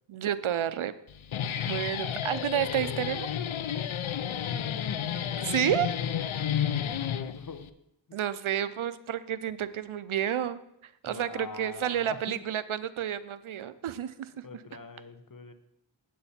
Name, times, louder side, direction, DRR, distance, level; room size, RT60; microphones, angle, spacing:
voice 1, 0.1-0.9 1.7-3.3 5.4-6.1 8.1-14.3, right 10 dB, 75° right, 15 dB, 0.6 m, -30 dB
Guitar, 1.1-7.7, left 9 dB, 75° left, 0.6 m, -31 dB
voice 2, 4.5-5.7 6.8-7.7 8.1-8.2 11.1-12.4 14.4-15.5, left 5 dB, 40° left, 10 dB, 0.9 m, -45 dB
8.5 x 8.0 x 4.3 m, 0.77 s
cardioid pair, 40°, 49 cm